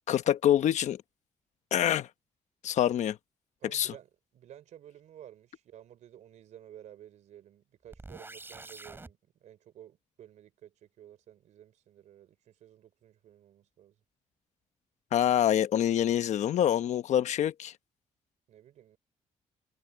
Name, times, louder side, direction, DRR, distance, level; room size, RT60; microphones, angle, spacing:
voice 1, 0.1-1.0 1.7-2.1 2.6-3.2 3.7-3.9 15.1-17.7, left 10 dB, 70° left, 1.1 m, -26 dB
voice 2, 3.6-14.0 18.5-19.0, right 11 dB, 80° right, 4.0 m, -53 dB
sound 1, 7.9-9.1, right 2 dB, 15° right, 6.7 m, -46 dB
cardioid pair, 130°, 12 cm